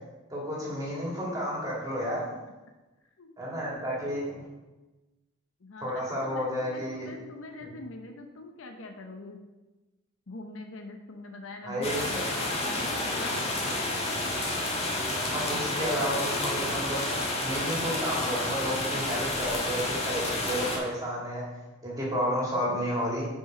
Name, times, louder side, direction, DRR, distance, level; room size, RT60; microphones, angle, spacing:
voice 1, 0.3-2.4 3.4-4.4 5.8-7.1 7.6-7.7 11.6-12.2 15.3-17.0 17.4-21.4 21.8-23.3, equal, 15° right, -5 dB, 2.5 m, -31 dB
voice 2, 3.2-3.8 5.6-9.4 10.3-14.1, left 2 dB, 65° left, 4 dB, 0.8 m, -44 dB
sound 1, 11.8-20.8, left 1 dB, 30° left, 1.5 m, -30 dB
7.3 x 5.6 x 5.0 m, 1.1 s
head